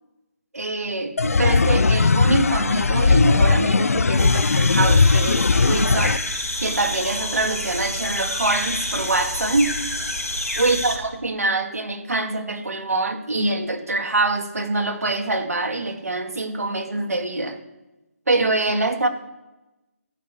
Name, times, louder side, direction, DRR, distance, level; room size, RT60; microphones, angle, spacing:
voice 1, 0.5-6.2 6.6-9.7 10.6-17.6 18.3-19.1, right 2 dB, 75° right, 5 dB, 2.3 m, -24 dB
sound 1, 1.2-6.2, left 4 dB, 70° left, 0.5 m, -18 dB
sound 2, 4.2-11.0, left 1 dB, 90° left, 3.4 m, -28 dB
14.0 x 6.5 x 9.2 m, 0.99 s
figure-of-eight pair, 150°, 8 cm